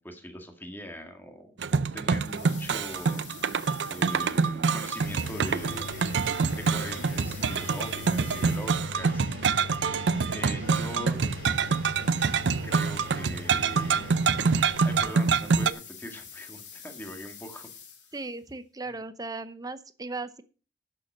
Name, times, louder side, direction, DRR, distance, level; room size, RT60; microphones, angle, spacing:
voice 1, 0.0-3.2 3.9-5.9 6.6-9.2 10.3-11.2 12.6-14.2 14.8-17.7 18.9-19.0, equal, 10° left, 5 dB, 1.9 m, -41 dB
sound 1, 1.6-15.7, right 5 dB, 75° right, 0.5 m, -26 dB
sound 2, 2.2-9.2 11.1-18.3, left 7 dB, 80° left, 3.1 m, -49 dB
Engine, 5.0-15.0, left 4 dB, 55° left, 4.8 m, -41 dB
voice 2, 18.1-20.4, right 3 dB, 20° right, 13 dB, 0.8 m, -37 dB
11.5 x 7.0 x 6.1 m, 0.37 s
head